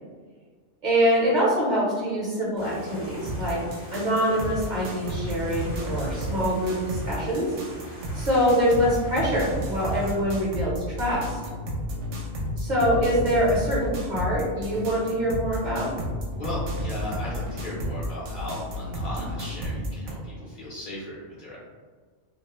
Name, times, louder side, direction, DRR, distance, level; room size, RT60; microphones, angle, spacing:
voice 1, 0.8-3.6 3.9-7.5 7.9-11.4 12.6-15.9, equal, 45° right, -7 dB, 0.7 m, -24 dB
sound 1, 2.6-10.1, right 1 dB, 15° left, 0.6 m, -43 dB
sound 2, 3.3-20.1, equal, 75° right, 0.9 m, -32 dB
voice 2, 3.4-3.7 16.3-21.6, left 1 dB, 55° left, -7 dB, 0.6 m, -36 dB
2.3 x 2.1 x 2.9 m, 1.5 s
omnidirectional pair, 1.2 m